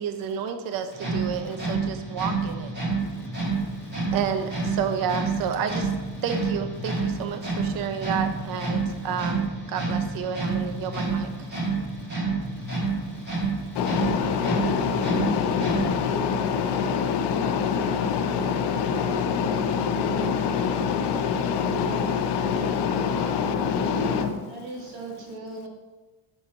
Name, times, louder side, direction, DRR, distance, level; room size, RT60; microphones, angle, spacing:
voice 1, 0.0-2.7 3.2-3.3 4.1-5.9 6.2-11.3, right 7 dB, 50° right, 0.5 m, -30 dB
sound 1, 0.9-16.2, right 3 dB, 20° right, 1.8 m, -29 dB
voice 2, 13.8-24.3, left 6 dB, 60° left, 0.7 m, -25 dB
voice 3, 23.8-25.7, right 3 dB, 85° right, 1.6 m, -38 dB
6.3 x 3.8 x 4.4 m
cardioid pair, 160°, 45 cm